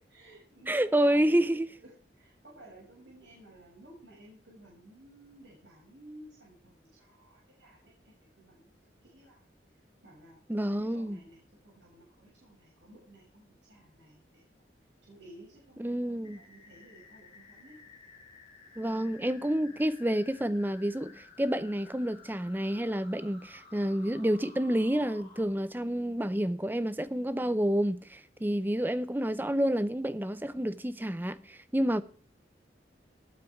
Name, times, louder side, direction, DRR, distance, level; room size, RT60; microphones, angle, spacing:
voice 1, 0.1-1.5 1.8-9.5 9.7-14.6 15.0-17.8, right 1 dB, 85° right, 7.4 m, -55 dB
voice 2, 0.7-1.7 10.5-11.2 15.8-16.4 18.8-32.0, right 1 dB, 10° right, 0.5 m, -29 dB
sound 1, 16.2-25.4, left 4 dB, 30° left, 4.7 m, -55 dB
19.0 x 9.4 x 4.8 m
head